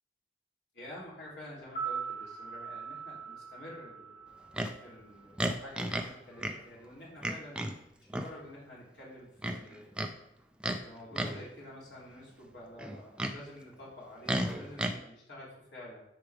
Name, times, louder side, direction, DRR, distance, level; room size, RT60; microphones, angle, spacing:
voice 1, 0.7-4.2 4.8-7.6 8.0-10.0 10.8-16.0, left 1 dB, 75° left, -6 dB, 3.0 m, -49 dB
sound 1, 1.6-5.8 6.0-6.1, right 6 dB, 40° left, 2.8 m, -42 dB
Livestock farm animals working animals, 4.5-4.8 5.4-6.1 6.4-6.6 7.2-7.8 8.1-8.3 9.4-10.1 10.6-10.8 11.1-11.5 12.8-13.4 14.3-14.9, right 1 dB, 5° right, 0.4 m, -33 dB
10.5 x 4.8 x 3.4 m, 0.82 s
head